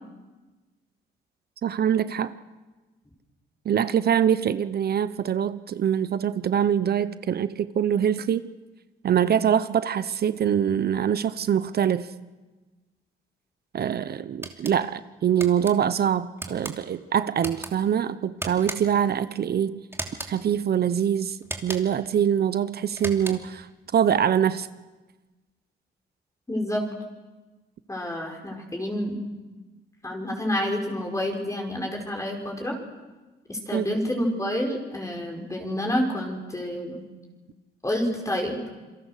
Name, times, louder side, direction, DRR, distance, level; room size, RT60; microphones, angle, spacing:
voice 1, 1.6-2.3 3.6-8.5 9.0-12.1 13.7-19.8 20.3-21.4 21.6-24.7 33.7-34.0, right 9 dB, 50° right, 13 dB, 0.9 m, -24 dB
sound 1, 14.4-14.8 15.4-15.7 16.4-16.8 17.4-17.7 18.4-19.0 19.9-20.4 21.4-22.0 22.9-23.6, right 2 dB, 10° right, 3.0 m, -36 dB
voice 2, 26.5-26.8 27.9-29.2 30.0-32.8 33.5-37.0 37.8-38.6, left 1 dB, 15° left, 1 dB, 5.3 m, -28 dB
27.5 x 22.5 x 6.6 m, 1.2 s
cardioid pair, 90°, 20 cm